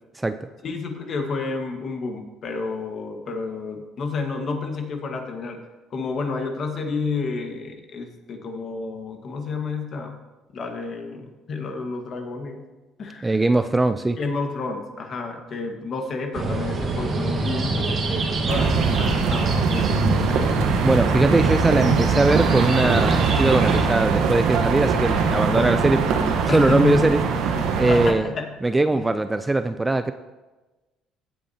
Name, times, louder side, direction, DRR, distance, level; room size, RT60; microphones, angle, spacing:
voice 1, 0.6-5.6 5.9-10.2 10.5-12.6 13.0-13.4 14.2-18.0 18.5-20.8 26.5-27.1 27.9-28.5 28.9-29.1, left 4 dB, 40° left, 4 dB, 1.5 m, -30 dB
voice 2, 13.2-14.2 20.8-27.2 27.8-28.3 28.6-30.1, right 2 dB, 10° right, 10 dB, 0.3 m, -21 dB
sound 1, 16.3-23.8, right 3 dB, 35° right, 1.4 m, -25 dB
sound 2, 18.5-28.1, right 5 dB, 70° right, 1.1 m, -22 dB
16.0 x 8.3 x 2.8 m, 1.2 s
cardioid pair, 135°, 0 cm